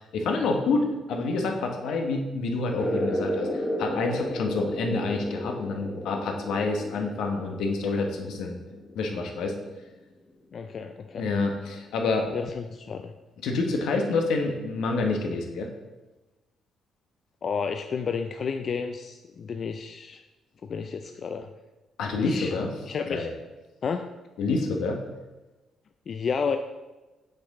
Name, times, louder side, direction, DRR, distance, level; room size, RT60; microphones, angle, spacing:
voice 1, 0.1-8.6 8.9-9.5 11.1-12.3 13.4-15.7 22.0-22.7 23.1-23.3 24.4-25.0, left 3 dB, 80° left, 3 dB, 1.0 m, -27 dB
sound 1, 2.8-9.9, equal, 20° left, 1.1 m, -33 dB
voice 2, 10.5-11.3 12.3-13.1 17.4-20.2 20.6-21.5 22.2-22.6 22.9-23.3 23.8-24.1 26.1-26.6, left 5 dB, 50° left, 7 dB, 0.3 m, -31 dB
7.7 x 4.5 x 3.6 m, 1.1 s
cardioid pair, 90°, 0 cm